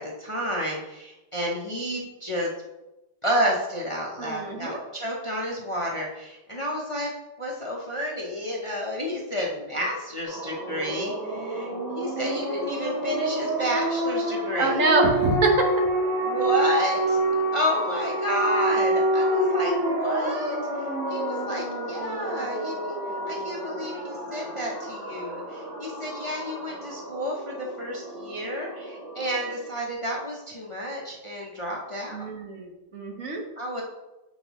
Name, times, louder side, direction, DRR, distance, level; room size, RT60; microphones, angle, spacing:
voice 1, 0.0-2.5 3.2-7.1 7.4-14.8 16.2-17.2 17.5-20.6 21.1-22.9 23.2-32.3 33.6-33.8, equal, 40° left, -2 dB, 0.4 m, -30 dB
voice 2, 4.2-4.8 14.6-15.7 32.1-33.4, right 3 dB, 50° right, 2 dB, 1.4 m, -25 dB
sound 1, 10.2-29.7, right 1 dB, 90° right, 2.5 m, -28 dB
7.6 x 5.5 x 3.0 m, 0.99 s
omnidirectional pair, 1.9 m